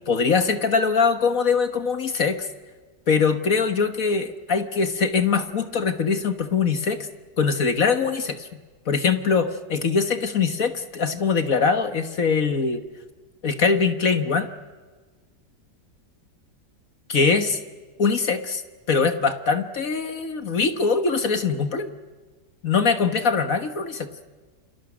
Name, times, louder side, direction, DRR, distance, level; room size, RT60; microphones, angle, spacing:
voice 1, 0.1-2.5 3.1-7.1 7.4-8.5 8.9-12.8 13.4-14.5 17.1-17.6 18.0-18.6 18.9-21.9 22.6-24.1, left 5 dB, 55° left, 8 dB, 1.7 m, -22 dB
29.5 x 27.0 x 6.2 m, 1.4 s
omnidirectional pair, 1.8 m